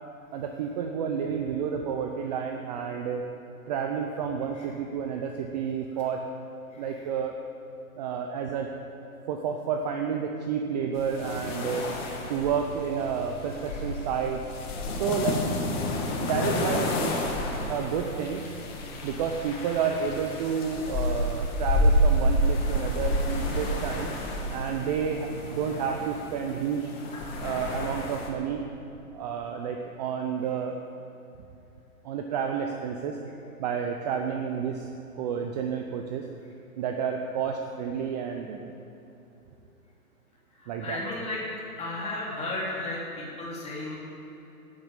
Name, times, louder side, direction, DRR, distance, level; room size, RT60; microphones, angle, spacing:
voice 1, 0.3-3.2 3.7-6.2 6.8-7.3 8.0-8.7 9.3-11.9 12.3-14.4 15.0-15.4 16.2-17.1 17.7-18.4 19.0-24.1 24.5-26.9 27.4-28.6 29.1-30.7 32.0-33.2 33.6-34.9 35.2-36.2 36.8-38.7 40.7-41.0, right 7 dB, 30° right, 4 dB, 0.6 m, -30 dB
sound 1, 10.9-28.3, left 1 dB, 40° left, 2.2 m, -29 dB
voice 2, 40.5-41.4 41.8-44.0, left 2 dB, 15° left, -5 dB, 3.2 m, -34 dB
10.0 x 8.9 x 8.8 m, 2.9 s
hypercardioid pair, 140°, 45 cm